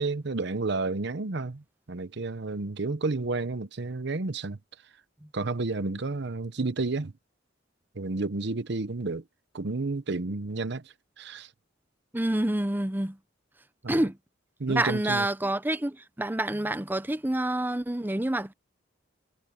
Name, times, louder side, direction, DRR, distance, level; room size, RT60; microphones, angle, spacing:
voice 1, 0.0-4.6 5.3-7.1 7.9-9.2 9.5-11.5 13.8-14.1 14.6-15.3, right 3 dB, 65° right, 0.9 m, -31 dB
voice 2, 12.1-13.2 13.9-14.2 14.7-18.5, right 1 dB, 10° right, 0.7 m, -27 dB
head